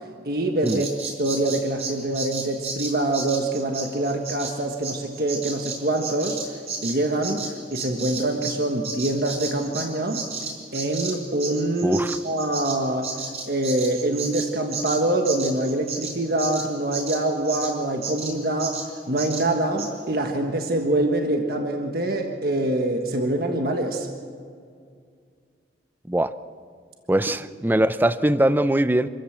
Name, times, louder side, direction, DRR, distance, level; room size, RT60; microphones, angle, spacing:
voice 1, 0.2-6.4 6.8-10.3 10.7-13.2 13.5-24.1, right 1 dB, 60° right, 3 dB, 1.4 m, -25 dB
Bird vocalization bird call bird song, 0.7-8.6 8.8-17.7 18.0-18.3 18.6-18.9 19.2-19.5 19.8-19.9, right 4 dB, 40° right, 4.9 m, -33 dB
voice 2, 11.8-12.2 26.1-26.3 27.1-29.1, right 1 dB, 10° right, 13 dB, 0.5 m, -21 dB
26.0 x 14.5 x 7.5 m, 2.2 s
head